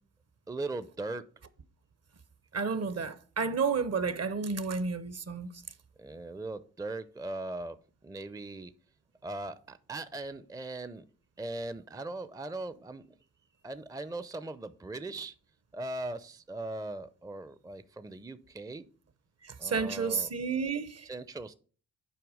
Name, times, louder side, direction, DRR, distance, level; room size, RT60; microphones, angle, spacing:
voice 1, 0.5-1.3 6.0-7.8 8.0-8.7 9.2-11.0 11.4-13.0 13.6-15.4 15.7-18.9 19.6-20.3 21.0-21.5, right 2 dB, 10° right, 0.5 m, -39 dB
voice 2, 2.5-5.5 19.4-21.1, right 5 dB, 40° right, 0.8 m, -31 dB
7.8 x 4.8 x 4.9 m
supercardioid pair, 50°, 37 cm